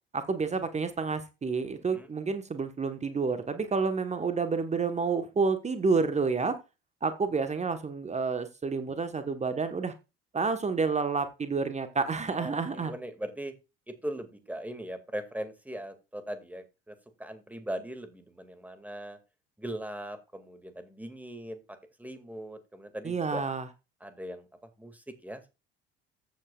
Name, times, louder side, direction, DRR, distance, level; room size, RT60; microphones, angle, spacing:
voice 1, 0.1-6.6 7.0-9.9 10.3-12.9 23.0-23.7, right 4 dB, 20° right, 9 dB, 1.3 m, -29 dB
voice 2, 12.4-13.5 14.0-16.9 17.2-19.2 19.6-21.6 22.0-23.4 24.0-24.4 24.8-24.9 25.2-25.4, right 1 dB, 5° right, 8 dB, 2.2 m, -39 dB
14.5 x 8.5 x 2.4 m, 0.28 s
figure-of-eight pair, 60°, 31 cm